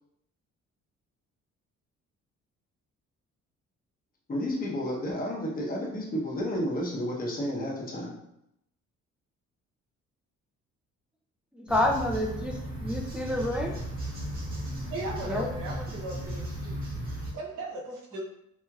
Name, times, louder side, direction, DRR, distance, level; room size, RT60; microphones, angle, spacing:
voice 1, 4.3-8.2, equal, 30° left, -3 dB, 0.8 m, -31 dB
voice 2, 11.6-12.5 12.8-13.8 15.3-15.5, left 1 dB, 5° right, -1 dB, 0.4 m, -28 dB
sound 1, 11.7-17.3, right 1 dB, 30° right, 1.0 m, -35 dB
voice 3, 14.8-16.5 17.3-18.2, right 2 dB, 80° right, -2 dB, 0.9 m, -37 dB
3.1 x 2.7 x 2.3 m, 0.78 s
cardioid pair, 90°, 30 cm